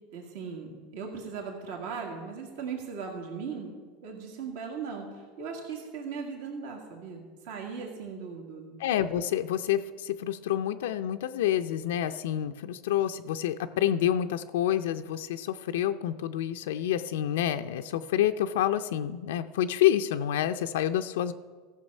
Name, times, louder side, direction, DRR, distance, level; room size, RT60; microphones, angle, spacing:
voice 1, 0.1-3.7 4.0-8.8, right 5 dB, 75° right, 2 dB, 1.8 m, -38 dB
voice 2, 8.8-21.3, left 11 dB, 85° left, 9 dB, 0.4 m, -28 dB
14.5 x 6.6 x 5.4 m, 1.5 s
supercardioid pair, 125°, 0 cm